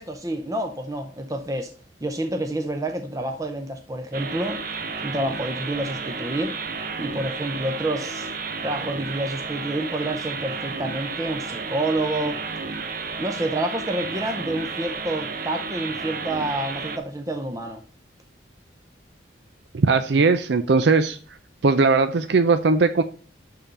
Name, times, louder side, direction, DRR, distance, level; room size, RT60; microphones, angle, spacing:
voice 1, 0.0-1.7 2.0-4.6 5.0-6.6 7.0-8.3 8.6-12.4 13.2-17.8, right 1 dB, 20° right, 0.6 m, -28 dB
sound 1, 4.1-17.0, right 4 dB, 50° right, 1.0 m, -32 dB
voice 2, 19.7-21.2 21.6-23.0, right 4 dB, 70° right, 0.5 m, -19 dB
11.5 x 3.8 x 5.4 m
head